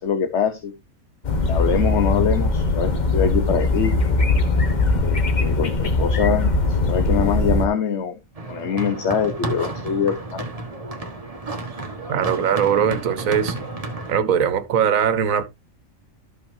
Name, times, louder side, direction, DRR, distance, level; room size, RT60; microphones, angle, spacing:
voice 1, 0.0-0.7 1.5-4.0 5.0-8.2 8.5-10.4, left 7 dB, 60° left, 1.2 m, -24 dB
sound 1, 1.2-7.7, left 3 dB, 35° left, 1.1 m, -20 dB
sound 2, 8.3-14.2, right 2 dB, 25° right, 1.4 m, -31 dB
voice 2, 12.1-13.6 14.1-15.4, right 8 dB, 80° right, 1.3 m, -20 dB
13.0 x 5.7 x 2.7 m
omnidirectional pair, 1.4 m